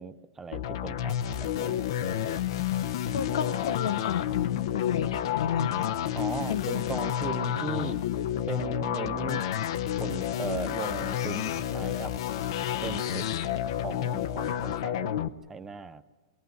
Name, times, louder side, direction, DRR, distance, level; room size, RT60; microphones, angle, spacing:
voice 1, 0.0-1.8 6.1-8.0 8.5-9.5 10.0-12.1 12.8-13.3 13.8-16.0, right 5 dB, 10° right, 11 dB, 0.7 m, -38 dB
sound 1, 0.5-15.3, left 10 dB, 60° left, 0.8 m, -30 dB
voice 2, 3.1-6.2 6.5-6.8, left 8 dB, 90° left, 11 dB, 0.9 m, -32 dB
22.5 x 21.0 x 9.3 m, 1.3 s
supercardioid pair, 155°, 3 cm